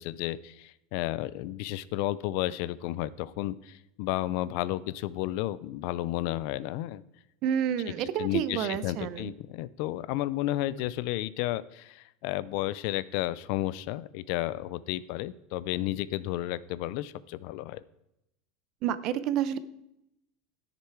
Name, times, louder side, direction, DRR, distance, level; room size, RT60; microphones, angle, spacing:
voice 1, 0.0-7.0 8.2-17.8, left 15 dB, 55° left, 18 dB, 0.4 m, -32 dB
voice 2, 7.4-9.3 18.8-19.6, right 9 dB, 40° right, 15 dB, 0.6 m, -29 dB
13.0 x 6.8 x 4.6 m, 0.85 s
supercardioid pair, 165°, 0 cm